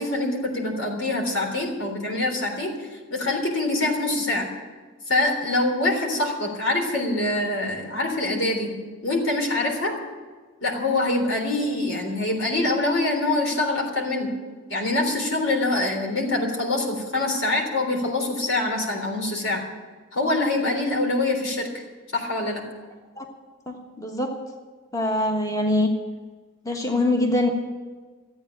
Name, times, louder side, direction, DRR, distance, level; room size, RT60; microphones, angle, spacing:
voice 1, 0.0-4.5 5.1-8.7 9.0-9.9 10.6-14.3 14.7-19.6 20.1-21.8 22.1-22.6, left 2 dB, 85° left, 1 dB, 3.6 m, -25 dB
voice 2, 23.7-24.3 24.9-25.9 26.6-27.5, left 1 dB, 15° left, 2 dB, 1.3 m, -23 dB
14.5 x 8.8 x 9.0 m, 1.4 s
head